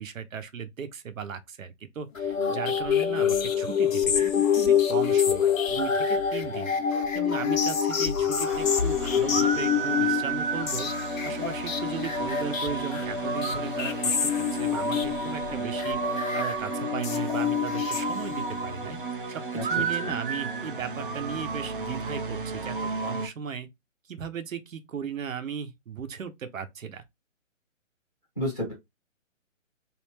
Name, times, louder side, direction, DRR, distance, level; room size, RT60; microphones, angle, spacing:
voice 1, 0.0-10.9 11.2-19.0 19.3-23.7 24.1-27.0, right 7 dB, 85° right, 0.8 m, -37 dB
sound 1, 2.2-18.6, left 7 dB, 90° left, 0.9 m, -26 dB
sound 2, 8.5-23.3, right 4 dB, 45° right, 0.4 m, -32 dB
voice 2, 19.5-20.1 28.3-28.7, left 1 dB, 5° left, 0.6 m, -32 dB
3.1 x 2.5 x 3.2 m
hypercardioid pair, 165°, 39 cm